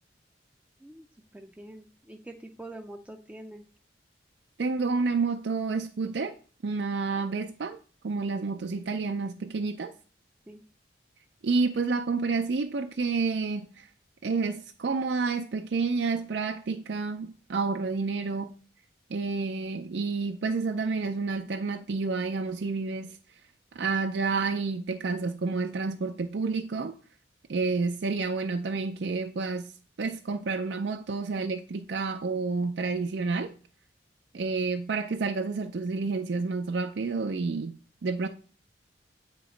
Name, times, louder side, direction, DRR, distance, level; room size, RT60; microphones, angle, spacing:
voice 1, 1.3-3.7 10.5-10.6, right 1 dB, 10° right, 0.4 m, -45 dB
voice 2, 4.6-6.3 6.6-7.8 8.0-9.9 11.4-13.9 14.2-18.5 19.1-23.2 23.7-27.0 27.5-29.7 30.0-33.5 34.3-37.7 38.0-38.3, right 4 dB, 65° right, 0.5 m, -29 dB
8.4 x 3.0 x 5.0 m
head